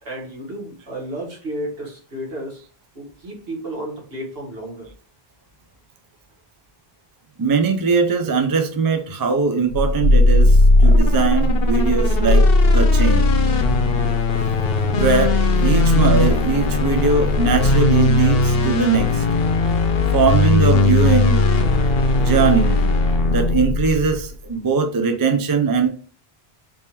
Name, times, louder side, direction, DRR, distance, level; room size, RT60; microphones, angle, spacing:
voice 1, 0.0-2.6 2.9-4.9, right 1 dB, 70° right, -2 dB, 1.6 m, -32 dB
voice 2, 7.4-12.4 12.7-13.3 14.9-19.2 20.1-21.6 22.2-22.9 23.3-25.9, right 5 dB, 35° right, 6 dB, 0.3 m, -20 dB
sound 1, 9.7-24.3, left 2 dB, 70° left, 0.8 m, -17 dB
3.5 x 3.0 x 2.9 m, 0.41 s
omnidirectional pair, 1.0 m